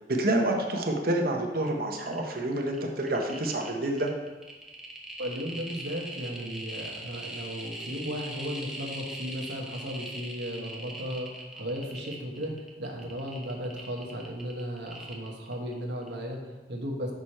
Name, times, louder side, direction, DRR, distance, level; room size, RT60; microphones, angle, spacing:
voice 1, 0.1-4.1, right 1 dB, 55° right, 1 dB, 0.9 m, -28 dB
sound 1, 1.7-1.8 1.9-2.3 2.7-15.7 16.0-16.1, right 1 dB, ahead, 0.9 m, -41 dB
voice 2, 5.2-17.1, equal, 80° right, 0 dB, 1.3 m, -35 dB
6.5 x 6.0 x 4.3 m, 1.2 s
head